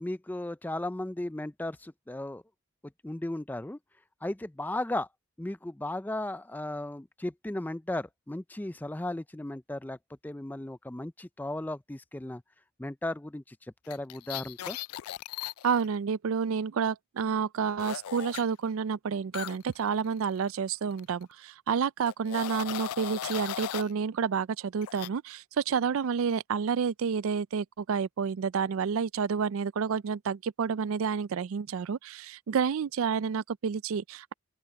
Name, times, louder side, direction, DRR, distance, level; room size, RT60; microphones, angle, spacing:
voice 1, 0.0-2.4 3.0-3.8 4.2-5.1 5.4-10.0 10.2-12.4 12.8-14.8, left 1 dB, 10° left, 0.4 m, -35 dB
sound 1, 13.9-15.9 17.8-18.4 19.3-20.7 21.0-21.2 22.1-23.9 24.8-25.1, left 12 dB, 85° left, 0.3 m, -37 dB
voice 2, 15.6-34.3, right 6 dB, 70° right, 0.4 m, -29 dB
open air
head